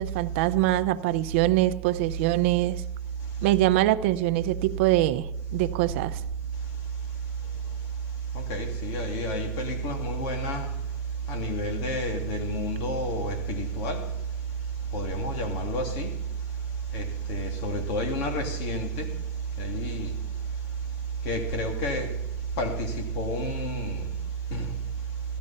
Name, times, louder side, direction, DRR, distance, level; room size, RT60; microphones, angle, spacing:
voice 1, 0.0-2.8 3.4-6.2, right 16 dB, 75° right, 0.6 m, -24 dB
voice 2, 8.3-10.7 11.3-14.0 14.9-16.1 16.9-19.1 19.6-20.1 21.2-22.1 22.6-24.1 24.5-24.7, right 1 dB, 60° left, 2.8 m, -29 dB
15.5 x 13.0 x 4.3 m
supercardioid pair, 140°, 7 cm